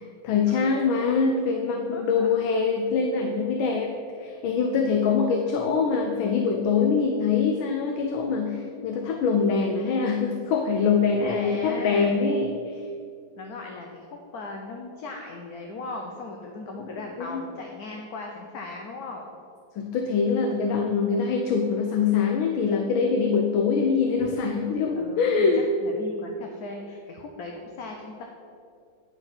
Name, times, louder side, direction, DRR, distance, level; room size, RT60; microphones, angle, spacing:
voice 1, 0.0-12.8 17.2-17.5 19.8-25.7, left 5 dB, 85° left, 3 dB, 1.5 m, -24 dB
voice 2, 1.9-2.3 11.2-12.2 13.4-19.3 24.9-25.5 25.8-28.2, left 3 dB, 60° left, 1 dB, 1.1 m, -38 dB
10.5 x 4.7 x 5.8 m, 2.3 s
omnidirectional pair, 2.1 m